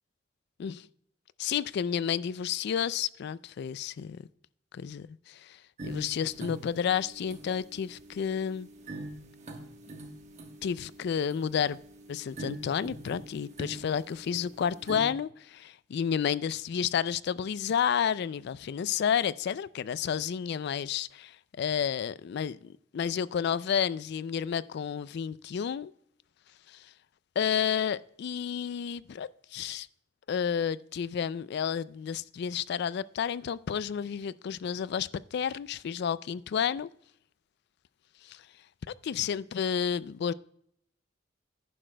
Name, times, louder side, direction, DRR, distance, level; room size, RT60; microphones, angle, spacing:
voice 1, 1.4-4.2 4.7-5.6 5.8-8.7 10.6-11.8 12.1-25.9 26.7-26.8 27.4-29.9 30.3-36.9 38.2-38.4 39.0-40.3, left 8 dB, 60° left, 0.3 m, -31 dB
sound 1, 5.8-15.1, right 2 dB, 40° right, 1.2 m, -45 dB
11.0 x 10.0 x 2.2 m
head